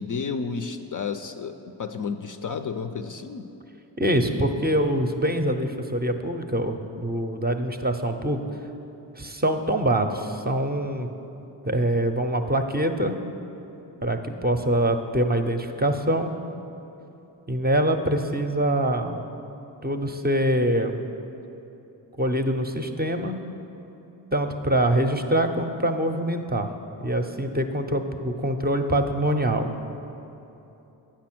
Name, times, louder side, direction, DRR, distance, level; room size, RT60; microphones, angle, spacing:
voice 1, 0.0-3.5, left 5 dB, 40° left, 7 dB, 0.5 m, -31 dB
voice 2, 4.0-8.4 9.2-11.1 11.6-13.2 14.0-16.3 17.5-19.2 19.8-21.0 22.2-23.4 24.3-26.7 27.0-29.7, right 1 dB, 20° right, 5 dB, 0.6 m, -24 dB
8.5 x 5.6 x 6.1 m, 3.0 s
supercardioid pair, 40°, 49 cm